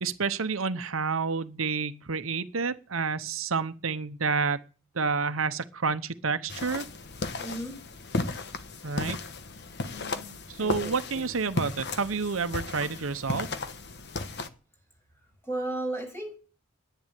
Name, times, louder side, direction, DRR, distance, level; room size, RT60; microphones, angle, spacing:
voice 1, 0.0-4.6 4.9-6.9 8.8-9.2 10.5-13.5, right 5 dB, 90° right, 0.9 m, -29 dB
sound 1, 6.5-14.5, left 3 dB, 55° left, 1.3 m, -35 dB
voice 2, 7.4-7.8 9.9-11.3 15.4-16.4, right 1 dB, 10° left, 6.5 m, -36 dB
10.5 x 10.0 x 8.2 m
head